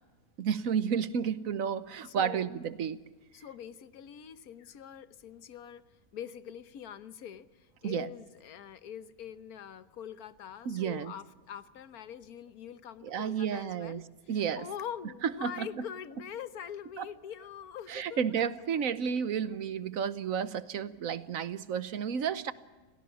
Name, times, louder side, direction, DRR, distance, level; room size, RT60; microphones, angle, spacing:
voice 1, 0.4-3.0 7.8-8.1 10.6-11.1 13.0-14.7 15.2-15.8 17.0-17.1 17.9-22.5, right 7 dB, 65° right, 15 dB, 1.3 m, -32 dB
voice 2, 2.0-2.5 3.3-5.8 6.1-7.5 7.8-14.0 14.5-18.2, left 9 dB, 80° left, 14 dB, 1.4 m, -44 dB
27.5 x 17.5 x 7.2 m, 1.3 s
omnidirectional pair, 1.5 m